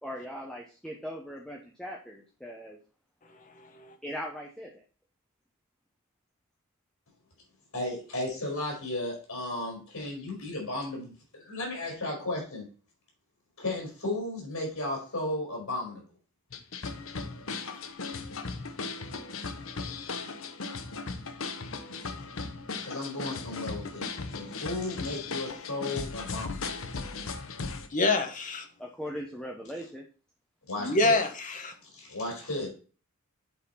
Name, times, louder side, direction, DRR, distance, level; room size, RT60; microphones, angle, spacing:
voice 1, 0.0-2.8 4.0-4.7 28.8-30.0, equal, 5° left, -1 dB, 0.8 m, -39 dB
voice 2, 7.7-12.7 13.6-16.0 22.8-26.8 30.7-31.2 31.9-32.7, left 2 dB, 85° left, -1 dB, 4.2 m, -34 dB
sound 1, 16.5-27.9, left 4 dB, 65° left, 0.9 m, -37 dB
voice 3, 27.9-28.6 30.8-31.7, left 2 dB, 40° left, 5 dB, 1.3 m, -26 dB
8.3 x 4.2 x 5.6 m, 0.38 s
head